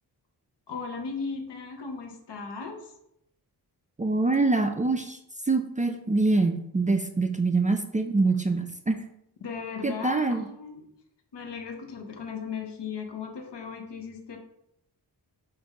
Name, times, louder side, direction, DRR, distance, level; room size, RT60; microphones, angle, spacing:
voice 1, 0.7-2.9 9.4-10.9 11.3-14.4, left 5 dB, 75° left, 4 dB, 0.9 m, -37 dB
voice 2, 4.0-5.2 5.5-9.0 9.8-10.5, right 3 dB, 20° right, 5 dB, 0.3 m, -25 dB
4.9 x 2.6 x 4.1 m, 0.77 s
cardioid pair, 65°, 42 cm